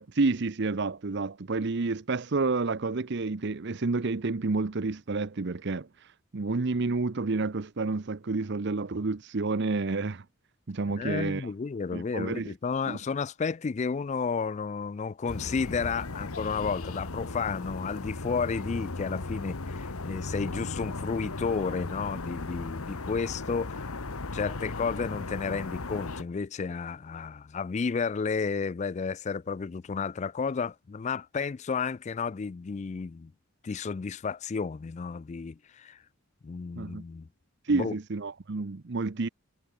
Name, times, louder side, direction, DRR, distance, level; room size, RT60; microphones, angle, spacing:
voice 1, 0.0-5.9 6.3-10.2 10.7-11.5 11.9-12.5 12.9-13.0 36.8-37.0 37.6-39.3, right 3 dB, 55° right, 0.7 m, -29 dB
voice 2, 10.9-23.9 24.3-33.3 33.6-36.0 36.4-37.3 37.7-38.0, left 5 dB, 35° left, 0.3 m, -32 dB
sound 1, 15.3-26.2, left 3 dB, 90° left, 1.4 m, -36 dB
head